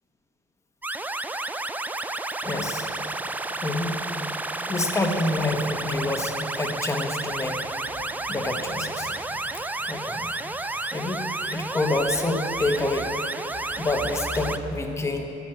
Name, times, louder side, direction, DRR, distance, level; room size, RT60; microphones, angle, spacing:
sound 1, 0.8-14.6, right 2 dB, 10° right, 0.4 m, -31 dB
voice 1, 2.4-2.9 3.6-3.9 4.7-7.7 8.3-9.1 9.9-10.3 10.9-13.1 13.8-15.3, left 2 dB, 15° left, 3 dB, 1.2 m, -27 dB
13.0 x 6.2 x 7.7 m, 2.9 s
cardioid pair, 110°, 17 cm